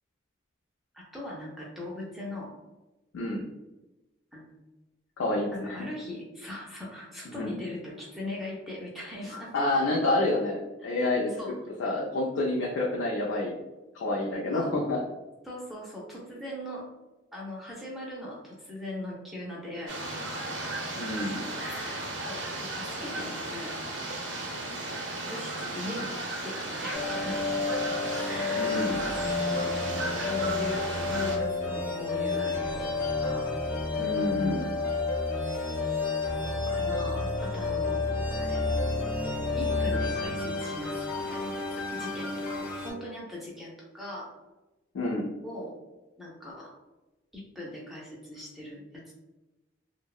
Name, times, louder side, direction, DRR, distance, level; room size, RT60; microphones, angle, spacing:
voice 1, 0.9-2.5 4.3-4.6 5.5-9.5 11.3-11.5 14.5-14.7 15.4-16.9 17.3-20.0 21.6-23.8 25.2-27.4 28.3-28.9 29.5-32.9 33.2-33.5 36.7-38.1 38.4-38.6 39.5-41.0 41.3-44.3 45.4-45.7 46.2-46.7 47.3-49.1, left 1 dB, ahead, -5 dB, 0.4 m, -40 dB
voice 2, 5.2-5.8 7.3-7.5 9.3-11.3 11.8-13.5 13.9-15.0 21.0-21.4 28.5-29.0 34.0-34.7 44.9-45.3, left 2 dB, 80° left, -3 dB, 0.4 m, -28 dB
sound 1, 19.9-31.4, right 2 dB, 65° right, 0.5 m, -35 dB
sound 2, 26.9-42.9, left 3 dB, 45° left, 0.7 m, -30 dB
2.7 x 2.0 x 2.3 m, 1.1 s
head